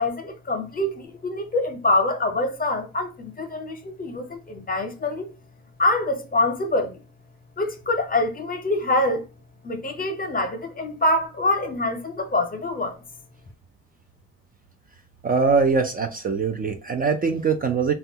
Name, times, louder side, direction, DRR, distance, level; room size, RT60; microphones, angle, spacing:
voice 1, 0.0-5.3 5.8-7.0 7.6-9.2 9.6-13.0, left 2 dB, 30° left, 0.8 m, -25 dB
voice 2, 15.2-17.9, right 5 dB, 30° right, 0.4 m, -22 dB
3.2 x 2.2 x 2.7 m
cardioid pair, 90°, 30 cm